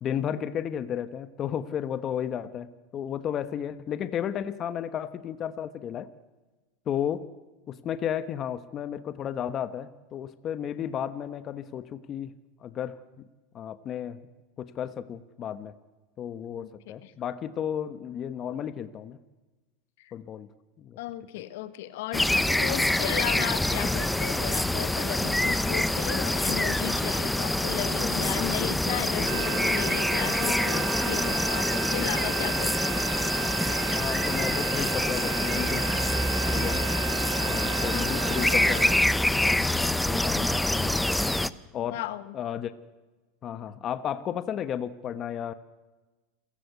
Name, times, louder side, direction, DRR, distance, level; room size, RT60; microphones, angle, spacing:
voice 1, 0.0-6.1 6.9-7.3 7.7-12.3 12.6-13.0 13.5-14.2 14.6-15.7 16.2-19.2 20.1-20.5 20.8-21.0 28.0-28.5 32.4-32.5 33.9-35.9 36.5-36.9 37.3-38.9 39.8-41.0 41.7-42.0 42.3-42.7 43.4-45.5, left 9 dB, 35° left, 13 dB, 1.1 m, -33 dB
voice 2, 21.0-33.0 41.9-42.3, left 14 dB, 75° left, 13 dB, 1.6 m, -35 dB
sound 1, 22.1-41.5, left 1 dB, 5° left, 0.8 m, -26 dB
sound 2, 29.3-39.0, right 13 dB, 65° right, 3.8 m, -34 dB
28.0 x 15.0 x 8.2 m, 1.2 s
supercardioid pair, 120°, 0 cm